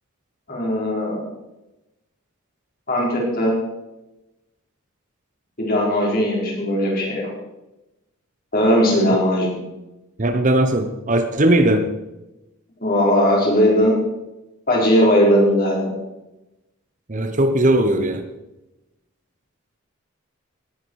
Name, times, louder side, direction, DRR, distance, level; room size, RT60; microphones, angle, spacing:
voice 1, 0.5-1.2 2.9-3.5 5.6-7.3 8.5-9.6 12.8-13.9 14.7-15.9, equal, 40° left, -3 dB, 4.7 m, -18 dB
voice 2, 10.2-11.9 17.1-18.2, right 1 dB, 35° right, 8 dB, 0.9 m, -18 dB
18.0 x 9.8 x 4.8 m, 0.98 s
head